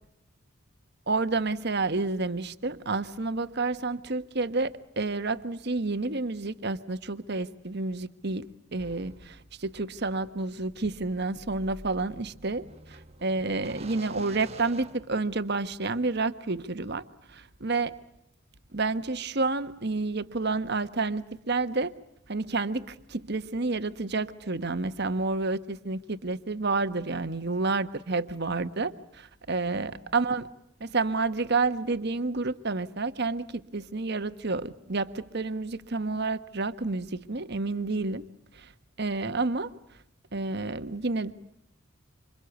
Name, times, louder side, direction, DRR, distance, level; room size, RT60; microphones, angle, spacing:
voice 1, 1.1-17.0 17.3-18.0 18.7-21.9 22.3-30.5 30.8-38.2 38.5-38.7 39.0-39.7 40.3-41.3, right 3 dB, 50° right, 1.2 m, -30 dB
sound 1, 8.8-15.7, right 2 dB, 30° right, 1.3 m, -49 dB
27.5 x 26.5 x 8.1 m
head